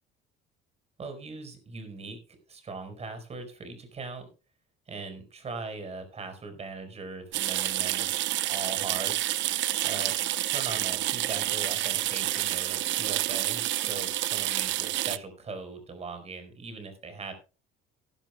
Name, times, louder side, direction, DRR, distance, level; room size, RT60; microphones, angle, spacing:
voice 1, 1.0-2.2 2.5-4.3 4.9-8.2 8.5-9.2 9.8-10.1 10.5-17.3, right 3 dB, 30° right, 8 dB, 4.6 m, -40 dB
sound 1, 7.3-15.2, right 15 dB, 65° right, 0.8 m, -29 dB
18.5 x 12.0 x 2.2 m, 0.32 s
cardioid pair, 135°, 20 cm